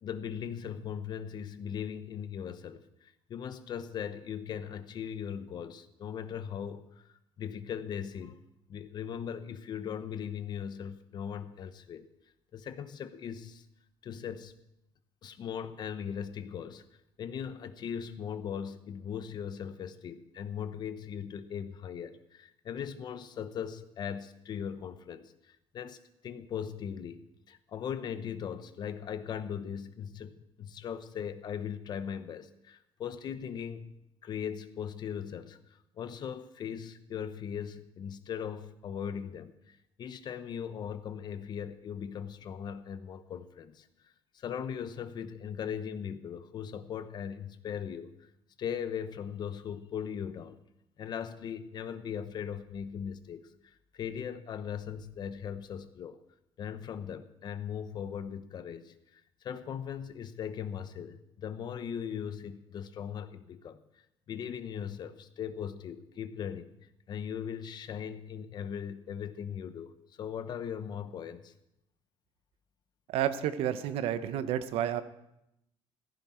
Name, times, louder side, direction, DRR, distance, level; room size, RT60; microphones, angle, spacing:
voice 1, 0.0-7.1 7.4-8.4 8.7-12.1 12.5-13.6 14.0-14.5 15.2-16.8 17.2-26.0 26.2-33.9 34.2-35.6 36.0-43.9 44.3-48.1 48.6-50.6 51.0-53.5 53.9-56.2 56.6-63.8 64.3-66.7 67.1-69.9 70.2-71.5, left 8 dB, 45° left, 11 dB, 0.9 m, -39 dB
voice 2, 73.1-75.0, right 10 dB, 75° right, 11 dB, 0.9 m, -30 dB
15.0 x 14.5 x 4.4 m, 0.84 s
cardioid pair, 130°, 10 cm